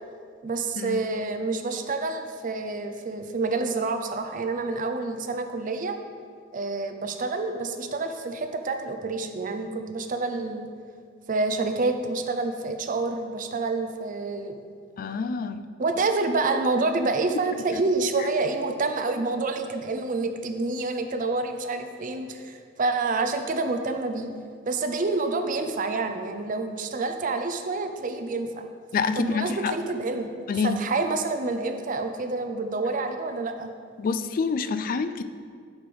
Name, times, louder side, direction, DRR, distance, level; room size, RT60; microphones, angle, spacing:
voice 1, 0.4-6.0 6.5-10.7 11.3-14.6 15.8-24.3 24.7-28.6 29.1-30.3 30.6-33.7, right 3 dB, 45° right, 7 dB, 0.5 m, -28 dB
voice 2, 15.0-15.6 17.7-17.8 18.2-18.3 28.9-29.7 30.5-30.8 34.0-35.2, left 5 dB, 45° left, 10 dB, 0.3 m, -27 dB
7.9 x 3.4 x 6.0 m, 2.1 s
head